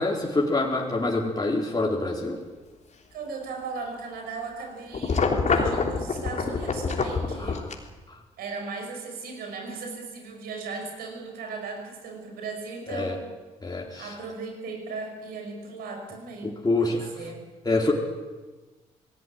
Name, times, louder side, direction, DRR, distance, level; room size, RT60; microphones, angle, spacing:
voice 1, 0.0-2.4 7.4-7.7 8.1-8.2 12.9-13.2 13.6-14.2 16.4-17.1 17.6-17.9, left 2 dB, 25° left, -1 dB, 4.1 m, -26 dB
voice 2, 3.1-7.6 8.4-13.3 14.0-17.4, right 4 dB, 75° right, 4 dB, 5.4 m, -37 dB
sound 1, 4.9-7.7, left 4 dB, 50° left, 3.4 m, -26 dB
19.5 x 17.0 x 9.4 m, 1.3 s
hypercardioid pair, 45°, 16 cm